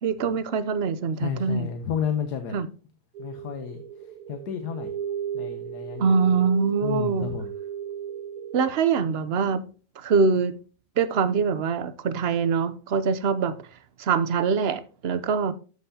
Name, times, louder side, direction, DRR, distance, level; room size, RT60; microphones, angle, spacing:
voice 1, 0.0-1.7 2.5-2.7 6.0-7.3 8.5-9.6 10.0-10.6 11.0-13.5 14.0-15.5, right 5 dB, 55° right, 0.7 m, -24 dB
voice 2, 1.2-2.6 3.2-3.8 4.3-4.9 5.3-6.2 6.8-7.5, left 8 dB, 85° left, 1.5 m, -31 dB
sound 1, 3.1-8.7, right 9 dB, 80° right, 1.1 m, -35 dB
14.0 x 5.6 x 2.8 m
omnidirectional pair, 1.7 m